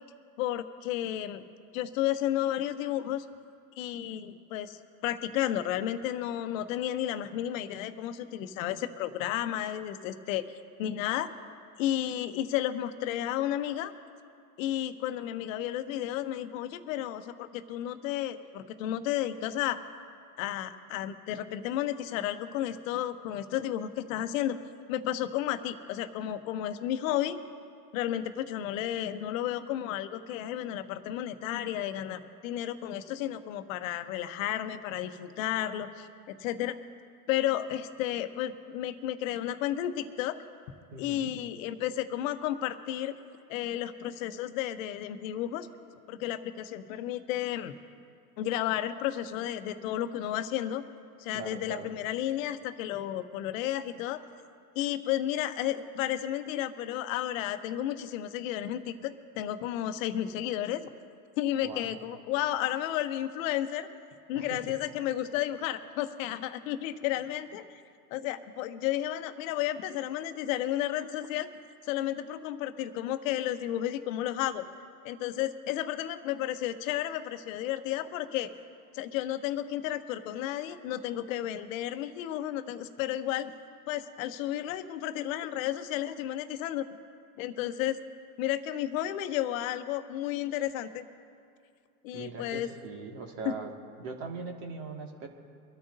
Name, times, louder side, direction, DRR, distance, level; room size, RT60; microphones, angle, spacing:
voice 1, 0.4-1.4 1.7-3.2 3.8-10.4 10.8-11.3 11.8-13.9 14.6-19.8 20.4-24.6 24.9-27.4 27.9-36.8 37.3-40.4 41.0-43.2 43.5-45.7 46.1-47.7 48.4-50.8 51.2-54.2 54.7-60.9 61.4-63.9 64.3-67.6 68.1-71.5 71.9-74.6 75.0-78.5 78.9-83.5 83.9-86.9 87.4-88.0 88.4-91.0 92.0-92.7 93.4-93.5, left 12 dB, 55° left, 10 dB, 1.1 m, -32 dB
voice 2, 40.9-41.3 51.3-51.9 61.6-62.0 64.3-64.6 92.1-93.7 94.0-95.3, right 4 dB, 45° right, 1 dB, 2.2 m, -40 dB
23.5 x 13.0 x 2.7 m, 2.3 s
hypercardioid pair, 90°, 48 cm